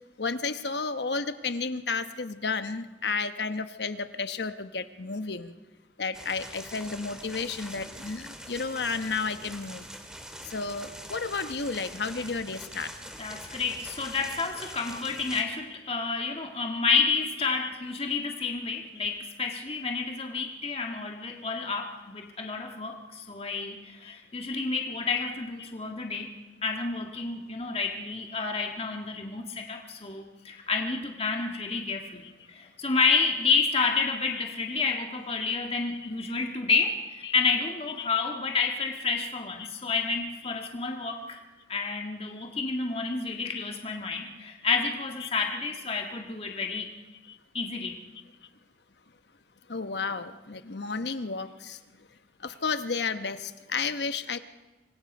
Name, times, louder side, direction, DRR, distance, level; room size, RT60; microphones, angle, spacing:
voice 1, 0.2-5.5 6.0-9.9 10.4-12.9 14.1-14.2 15.8-16.0 16.6-16.8 17.4-17.7 24.0-24.1 25.6-25.7 28.3-28.4 33.5-34.1 36.0-36.1 37.2-37.4 37.9-38.1 38.6-38.7 39.1-39.2 39.6-39.7 40.4-40.7 45.2-45.3 45.9-46.0 47.3-47.4 49.7-51.8 52.4-54.4, left 4 dB, 75° left, 10 dB, 1.1 m, -33 dB
sound 1, 6.1-15.4, equal, 5° right, 2.3 m, -44 dB
voice 2, 13.2-26.3 26.6-41.4 41.7-46.9 47.5-48.0, left 4 dB, 35° left, 2 dB, 1.7 m, -30 dB
26.5 x 22.5 x 5.4 m, 1.1 s
head